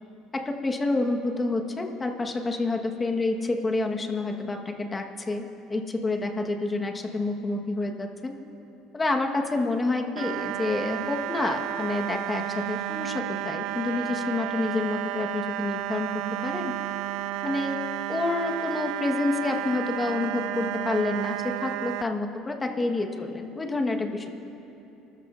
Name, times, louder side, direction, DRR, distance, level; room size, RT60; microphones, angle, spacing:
voice 1, 0.3-8.3 8.9-16.1 16.4-16.7 17.4-17.8 18.1-24.3, left 2 dB, 20° left, 3 dB, 1.4 m, -28 dB
sound 1, 10.2-22.0, right 14 dB, 75° right, 0.3 m, -32 dB
25.0 x 13.5 x 2.6 m, 3.0 s
supercardioid pair, 100°, 0 cm